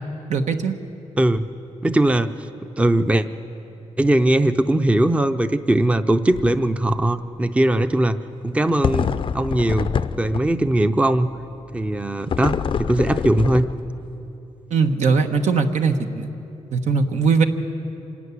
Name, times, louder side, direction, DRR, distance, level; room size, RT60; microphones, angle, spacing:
voice 1, 0.3-0.8 14.7-16.3 16.7-17.4, right 5 dB, 75° right, 6 dB, 1.3 m, -20 dB
voice 2, 1.2-1.5 1.8-2.3 2.8-3.3 4.0-8.2 8.4-9.1 9.3-9.9 10.2-11.3 11.7-13.7, right 1 dB, 10° right, 10 dB, 0.6 m, -19 dB
sound 1, 6.2-6.6 6.9-7.0 8.8-10.7 12.3-14.1, left 6 dB, 45° left, 0.5 m, -25 dB
25.5 x 13.0 x 9.7 m, 2.9 s
wide cardioid pair, 125°, 12 cm